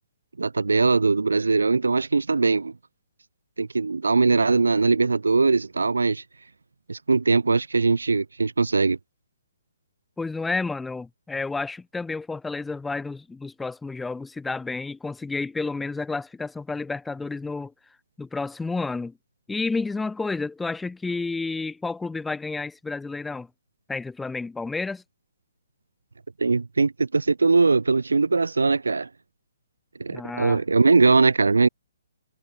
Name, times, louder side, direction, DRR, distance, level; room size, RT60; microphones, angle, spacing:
voice 1, 0.4-2.7 3.6-6.2 6.9-9.0 26.4-29.1 30.0-31.7, right 4 dB, 90° right, 3.7 m, -21 dB
voice 2, 10.2-17.7 18.2-19.2 19.5-23.5 23.9-25.0 30.1-30.6, left 3 dB, 5° left, 6.3 m, -30 dB
hypercardioid pair, 145°, 0 cm